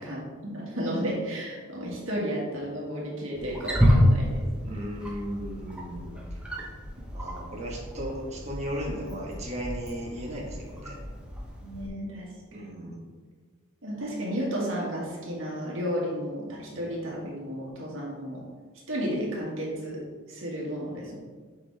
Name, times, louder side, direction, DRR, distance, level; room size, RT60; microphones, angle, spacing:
voice 1, 0.0-4.4 11.6-12.7 13.8-18.4 18.9-20.0 20.3-21.2, equal, 70° right, -4 dB, 2.0 m, -33 dB
Wild animals, 3.3-11.9, equal, 5° right, 0.9 m, -29 dB
voice 2, 4.6-6.4 7.1-11.0 12.5-13.0, equal, 35° right, -3 dB, 1.6 m, -36 dB
7.4 x 5.3 x 3.5 m, 1.5 s
head